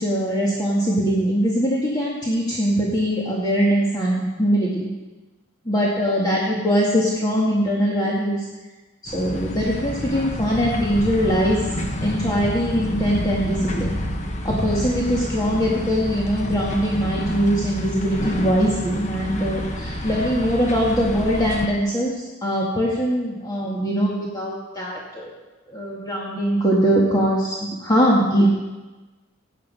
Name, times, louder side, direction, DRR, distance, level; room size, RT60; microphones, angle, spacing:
voice 1, 0.0-4.9 5.7-8.5 9.0-11.7 12.0-13.9 14.4-25.4 25.7-28.5, equal, 20° left, -4 dB, 1.9 m, -22 dB
sound 1, 9.1-21.7, equal, 35° left, 1.1 m, -28 dB
16.5 x 9.4 x 5.5 m, 1.2 s
head